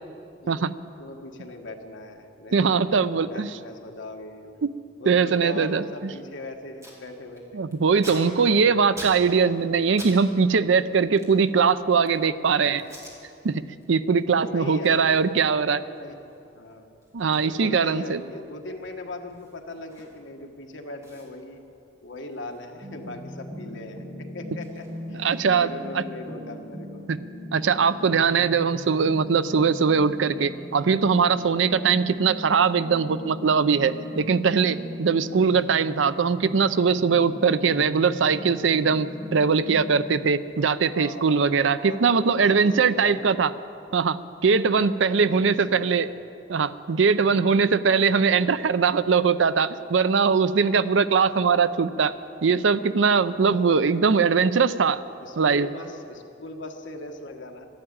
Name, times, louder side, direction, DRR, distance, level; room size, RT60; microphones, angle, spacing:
voice 1, 1.0-4.6 5.0-7.7 8.1-9.0 14.3-15.3 15.8-16.2 16.5-16.9 17.4-21.6 22.0-25.3 25.6-27.1 28.6-28.7 40.9-43.5 45.0-46.4 47.8-48.6 53.4-53.6 55.2-57.7, left 2 dB, 80° left, 3 dB, 1.4 m, -40 dB
voice 2, 2.5-3.6 4.6-4.7 5.1-6.1 7.5-12.8 13.4-13.6 13.9-15.8 17.1-18.2 25.1-25.7 25.9-26.0 27.1-27.2 27.5-43.5 43.9-46.1 46.5-52.1 52.4-55.0 55.4-55.7, right 5 dB, 85° right, 14 dB, 0.5 m, -21 dB
Packing tape duct tape, 6.8-7.0 7.3-10.2 10.4-12.3 12.8-13.2 13.6-13.9 14.2-20.4 20.7-20.8 21.0-23.4 23.7-25.6, right 1 dB, 15° right, 2.6 m, -46 dB
sound 1, 22.8-40.2, equal, 30° right, 1.2 m, -39 dB
12.5 x 11.5 x 8.8 m, 2.6 s
head